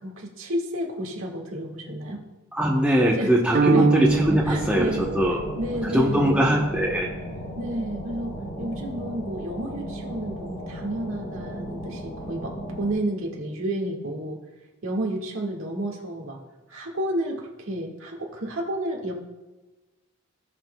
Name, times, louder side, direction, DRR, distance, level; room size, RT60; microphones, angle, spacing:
voice 1, 0.0-2.2 3.2-3.4 3.7-3.9 4.5-5.1 5.6-6.7 7.6-14.4 14.8-16.4 16.7-19.1, right 1 dB, 90° right, -1 dB, 1.8 m, -31 dB
voice 2, 2.5-5.4 5.8-7.1, equal, 5° right, -3 dB, 0.8 m, -21 dB
sound 1, 3.5-5.9, right 4 dB, 55° right, 0.7 m, -24 dB
sound 2, 4.0-12.9, equal, 90° left, 3.0 m, -35 dB
17.5 x 6.3 x 2.3 m, 1.1 s
head